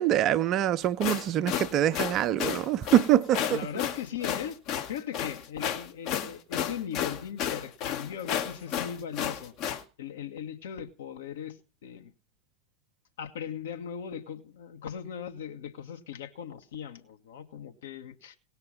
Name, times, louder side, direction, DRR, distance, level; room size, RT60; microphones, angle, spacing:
voice 1, 0.0-3.6, right 12 dB, 35° right, 0.6 m, -24 dB
sound 1, 0.8-9.8, left 9 dB, 40° left, 1.0 m, -32 dB
voice 2, 3.5-4.6 4.9-9.5 10.0-12.1 13.2-18.4, left 8 dB, 60° left, 1.4 m, -38 dB
18.0 x 6.6 x 5.6 m
figure-of-eight pair, 90°, 0 cm